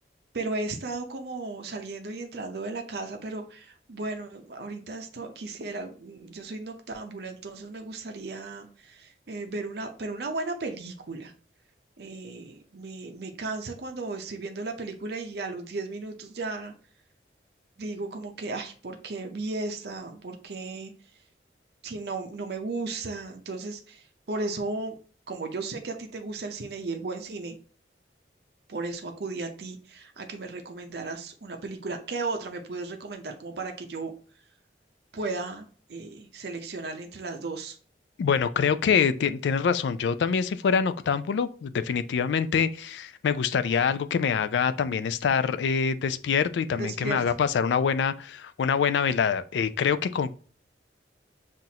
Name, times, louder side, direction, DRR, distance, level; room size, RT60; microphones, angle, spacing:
voice 1, 0.3-11.3 12.0-16.7 17.8-20.9 21.8-25.0 25.3-27.6 28.7-34.1 35.1-37.8 46.7-47.2, right 3 dB, 65° right, 0.6 m, -35 dB
voice 2, 38.2-50.3, left 6 dB, 85° left, 0.3 m, -25 dB
5.7 x 2.5 x 2.7 m
head